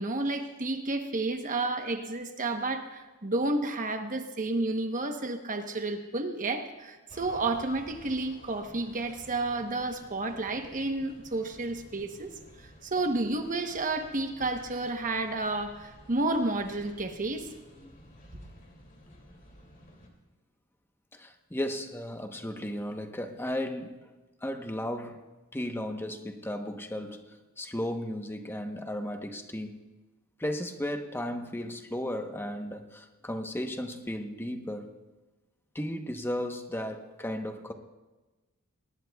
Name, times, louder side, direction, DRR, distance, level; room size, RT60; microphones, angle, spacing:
voice 1, 0.0-12.3 12.6-17.5, right 2 dB, 35° right, 5 dB, 1.0 m, -31 dB
sound 1, 7.1-20.1, left 1 dB, 40° left, 2.5 m, -53 dB
voice 2, 21.1-24.0 24.4-25.2 25.5-29.8 30.4-34.9 35.7-37.7, left 1 dB, 10° left, 5 dB, 1.0 m, -35 dB
23.0 x 19.0 x 2.3 m, 1.2 s
head